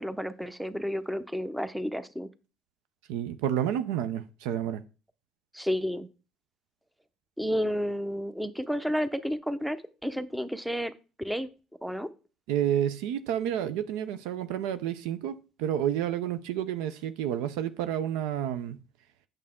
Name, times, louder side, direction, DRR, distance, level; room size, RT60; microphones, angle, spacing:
voice 1, 0.0-2.3 5.5-6.1 7.4-10.9 11.2-11.5 11.8-12.1, equal, 5° right, 0.7 m, -31 dB
voice 2, 3.1-4.8 12.5-18.8, right 10 dB, 80° right, 0.5 m, -30 dB
8.4 x 6.6 x 3.6 m
supercardioid pair, 75°, 0 cm